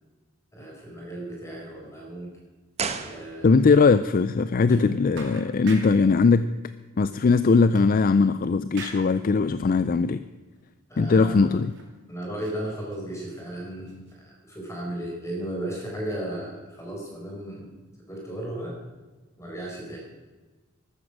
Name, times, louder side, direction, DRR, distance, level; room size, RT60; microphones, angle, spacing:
voice 1, 0.5-2.3 3.0-3.6 4.7-4.9 10.9-11.6 12.1-17.7 18.1-18.8 19.4-20.0, right 1 dB, 15° left, -2 dB, 4.8 m, -35 dB
sound 1, 1.5-1.9 2.2-2.3 2.8-3.0 3.4-3.5 4.0-4.1 4.8-4.9 5.1-6.1 7.7-8.4 8.8-9.2 9.9-10.0 10.6-10.7 11.4-12.0 12.2-13.5 13.9-14.2, right 3 dB, 55° right, 2.8 m, -44 dB
sound 2, 2.7-4.1, right 5 dB, 30° right, 1.0 m, -33 dB
voice 2, 3.4-6.5 7.0-10.2 11.0-11.7, left 4 dB, 40° left, 13 dB, 0.4 m, -20 dB
14.0 x 12.5 x 6.2 m, 1.2 s
head